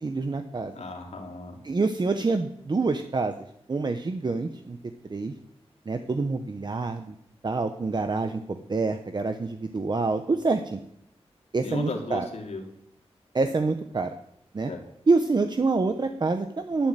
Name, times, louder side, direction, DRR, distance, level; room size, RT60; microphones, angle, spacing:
voice 1, 0.0-0.7 1.6-3.3 3.7-4.8 5.1-5.3 5.9-7.1 7.4-10.8 11.5-12.3 13.3-14.1 14.5-14.7 15.1-16.9, right 3 dB, 40° right, 7 dB, 0.9 m, -26 dB
voice 2, 0.7-1.6 11.6-12.6 14.7-14.8, left 3 dB, 80° left, 1 dB, 3.2 m, -35 dB
11.5 x 11.0 x 9.1 m, 0.74 s
wide cardioid pair, 125°, 11 cm